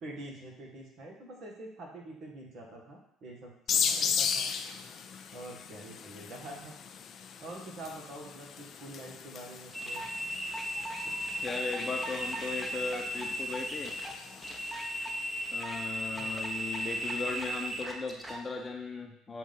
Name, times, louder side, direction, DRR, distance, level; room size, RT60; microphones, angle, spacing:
voice 1, 0.0-4.5 5.3-6.7 7.4-10.0 11.1-11.3 16.2-16.4, right 1 dB, 55° right, -1 dB, 1.7 m, -46 dB
sound 1, 3.7-15.0, left 7 dB, 50° left, 0.4 m, -37 dB
sound 2, 9.7-18.4, equal, 15° right, 1.1 m, -36 dB
voice 2, 11.4-14.0 15.5-19.4, left 4 dB, 30° left, 3 dB, 0.9 m, -37 dB
7.2 x 2.6 x 5.6 m, 0.75 s
hypercardioid pair, 60°, 0 cm